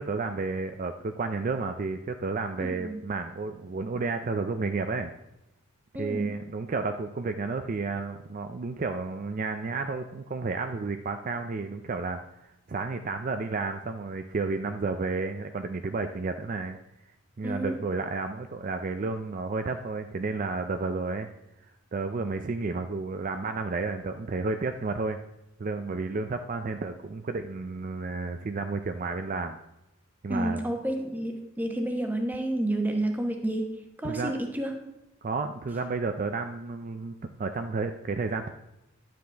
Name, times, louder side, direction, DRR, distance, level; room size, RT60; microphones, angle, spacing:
voice 1, 0.0-5.1 6.0-16.8 17.4-21.3 21.9-25.2 25.6-29.6 30.2-30.6 34.0-34.3 35.2-38.5, right 3 dB, 40° right, 7 dB, 0.4 m, -31 dB
voice 2, 2.6-3.0 5.9-6.4 17.4-17.8 30.3-34.9, right 1 dB, 10° right, 3 dB, 1.0 m, -30 dB
11.0 x 7.7 x 3.4 m, 0.90 s
head